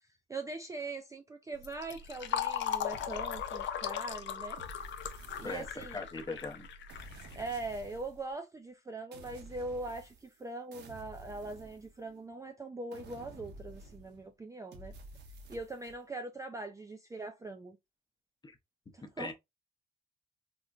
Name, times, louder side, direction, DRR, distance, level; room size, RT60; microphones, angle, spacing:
voice 1, 0.3-4.6 5.4-6.0 7.4-14.9 15.5-17.8 18.9-19.3, right 2 dB, 15° right, 0.3 m, -41 dB
Fill (with liquid), 1.6-8.0, left 9 dB, 65° left, 0.5 m, -38 dB
sound 1, 2.9-4.0 4.6-6.2 6.9-8.2 9.1-10.4 10.7-12.3 12.9-14.3 14.7-16.0, right 1 dB, 60° right, 0.8 m, -51 dB
voice 2, 5.4-6.7 18.4-18.6 19.0-19.3, left 3 dB, 20° left, 0.7 m, -40 dB
3.6 x 2.1 x 2.4 m
cardioid pair, 90°, 20 cm